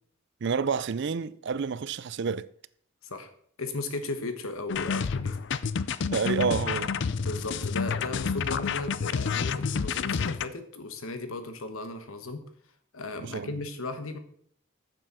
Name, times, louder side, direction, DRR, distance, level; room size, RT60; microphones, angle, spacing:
voice 1, 0.4-2.5 6.1-6.9 13.2-13.5, right 5 dB, 55° right, 0.4 m, -29 dB
voice 2, 3.6-5.4 7.2-12.4 12.9-14.2, left 2 dB, 85° left, 1.3 m, -36 dB
sound 1, 4.7-10.5, left 6 dB, 60° left, 0.5 m, -29 dB
9.0 x 7.0 x 6.2 m
head